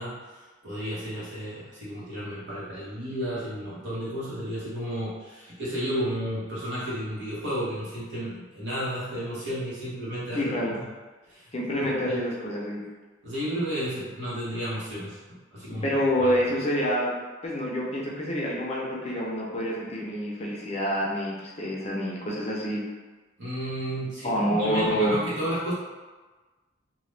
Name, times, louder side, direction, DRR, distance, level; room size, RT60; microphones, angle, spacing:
voice 1, 0.0-10.8 11.3-11.5 11.8-12.2 13.2-15.2 15.5-15.8 16.2-16.4 23.4-25.7, equal, 60° right, -9 dB, 1.2 m, -32 dB
voice 2, 10.3-10.7 11.5-12.8 15.8-17.1 17.4-22.8 24.2-25.2, equal, 30° left, -4 dB, 0.5 m, -27 dB
2.9 x 2.2 x 3.2 m, 1.3 s
head